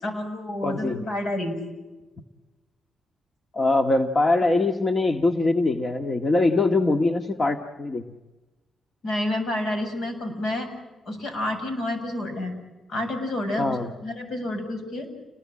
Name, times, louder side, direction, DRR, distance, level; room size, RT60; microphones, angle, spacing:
voice 1, 0.0-1.6 9.0-10.7 11.1-12.5 12.9-15.1, left 1 dB, 65° left, 6 dB, 7.6 m, -29 dB
voice 2, 0.6-1.0 3.5-8.0 13.6-13.9, left 2 dB, 35° left, 6 dB, 1.9 m, -22 dB
30.0 x 20.5 x 8.9 m, 1.2 s
supercardioid pair, 65°, 0 cm